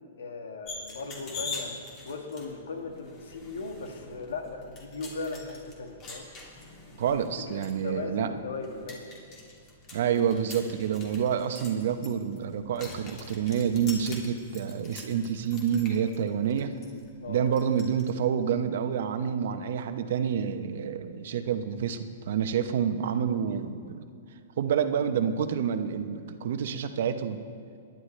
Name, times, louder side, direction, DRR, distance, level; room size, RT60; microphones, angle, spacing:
voice 1, 0.2-1.8 2.0-6.3 7.1-7.2 7.5-9.1 17.2-17.5, left 3 dB, 85° left, 4 dB, 1.8 m, -38 dB
sound 1, 0.7-18.1, left 3 dB, 30° left, 2.6 m, -45 dB
voice 2, 7.0-8.3 9.9-16.7 17.3-24.1 24.6-27.4, right 8 dB, 65° right, 8 dB, 0.9 m, -28 dB
22.0 x 10.5 x 3.3 m, 2.4 s
hypercardioid pair, 140°, 0 cm